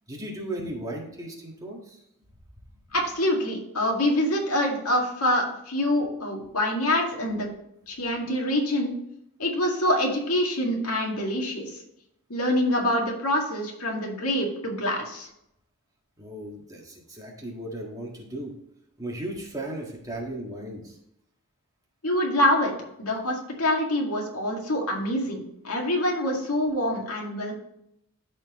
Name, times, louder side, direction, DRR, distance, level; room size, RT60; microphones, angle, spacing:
voice 1, 0.1-2.0 16.2-18.5 19.0-21.0, right 1 dB, 15° right, -1 dB, 1.7 m, -36 dB
voice 2, 2.9-7.5 7.9-8.9 9.4-11.8 12.3-15.3 22.0-22.7 23.0-27.5, left 1 dB, 85° left, 0 dB, 2.0 m, -25 dB
13.0 x 4.5 x 3.1 m, 0.78 s
head